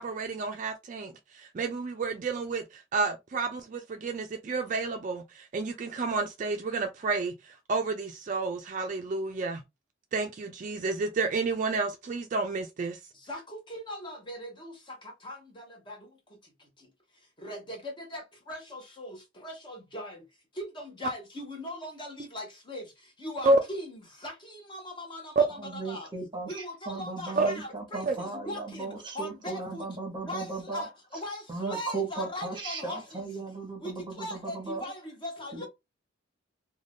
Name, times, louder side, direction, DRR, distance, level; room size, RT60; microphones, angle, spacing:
voice 1, 0.0-9.6 10.1-13.0 23.4-23.6 25.4-25.5 27.4-27.5 28.1-28.2, right 3 dB, 40° right, 0.3 m, -30 dB
voice 2, 13.1-20.3 20.5-26.1 26.5-29.9 30.2-33.4 33.8-35.7, left 1 dB, 25° left, 0.7 m, -40 dB
voice 3, 25.6-30.9 31.5-34.9 35.5-35.7, right 3 dB, 25° right, 0.9 m, -36 dB
2.5 x 2.2 x 3.3 m
head